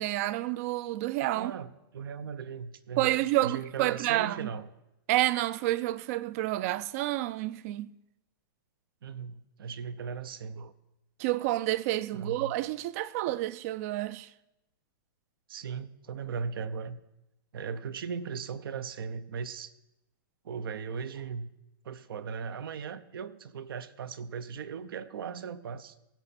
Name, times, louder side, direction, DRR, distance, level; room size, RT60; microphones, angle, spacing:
voice 1, 0.0-1.5 3.0-4.5 5.1-7.9 11.2-14.3, right 16 dB, 40° right, 0.4 m, -29 dB
voice 2, 1.3-4.7 9.0-10.7 12.1-12.5 15.5-17.0 17.5-19.7 20.4-21.5 21.8-25.9, right 6 dB, 75° right, 0.7 m, -38 dB
16.5 x 5.9 x 4.1 m
hypercardioid pair, 145°, 12 cm